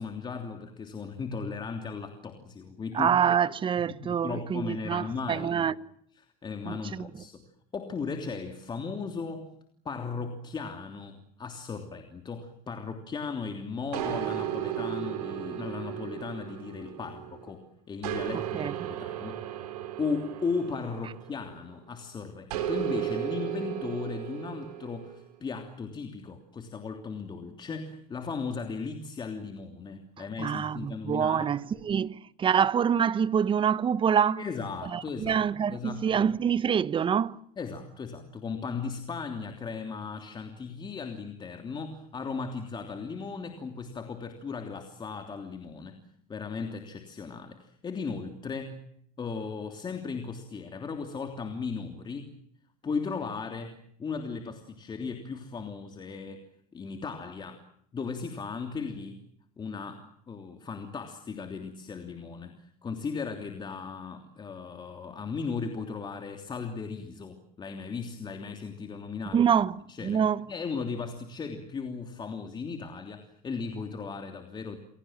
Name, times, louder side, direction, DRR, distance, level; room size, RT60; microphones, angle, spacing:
voice 1, 0.0-3.1 3.9-5.7 6.2-7.4 7.7-9.5 9.8-19.6 20.0-31.5 34.4-36.4 37.6-46.0 46.3-48.8 49.2-52.3 52.8-56.4 56.7-57.6 57.9-59.2 59.6-69.5 69.9-70.2 70.5-74.8, left 5 dB, 25° left, 3.1 m, -36 dB
voice 2, 2.9-5.7 6.6-7.0 18.3-18.7 30.4-34.4 34.8-37.4 69.3-69.8 70.0-70.4, right 8 dB, 25° right, 1.1 m, -26 dB
sound 1, 13.9-17.5 18.0-21.7 22.5-25.2, right 12 dB, 85° right, 6.9 m, -35 dB
29.5 x 23.0 x 7.5 m
supercardioid pair, 125°, 20 cm